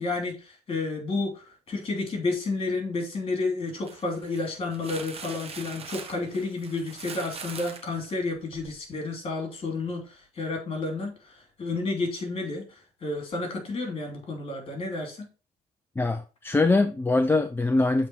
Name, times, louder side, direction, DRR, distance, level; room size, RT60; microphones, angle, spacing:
voice 1, 0.0-15.3, left 3 dB, 35° left, 2.9 m, -31 dB
sound 1, 3.7-8.8, right 5 dB, 35° right, 1.2 m, -42 dB
voice 2, 16.0-18.1, left 2 dB, 15° left, 0.5 m, -23 dB
7.7 x 3.6 x 4.6 m
cardioid pair, 110°, 17 cm